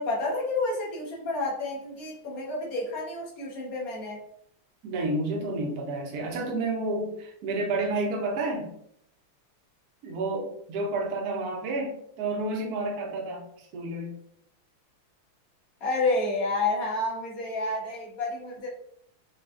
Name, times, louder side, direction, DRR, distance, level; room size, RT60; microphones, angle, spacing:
voice 1, 0.0-4.2 15.8-18.7, left 2 dB, 55° left, -2 dB, 1.0 m, -29 dB
voice 2, 4.8-8.7 10.0-14.1, right 2 dB, 60° right, 1 dB, 1.0 m, -30 dB
4.8 x 2.4 x 2.4 m, 0.69 s
omnidirectional pair, 2.4 m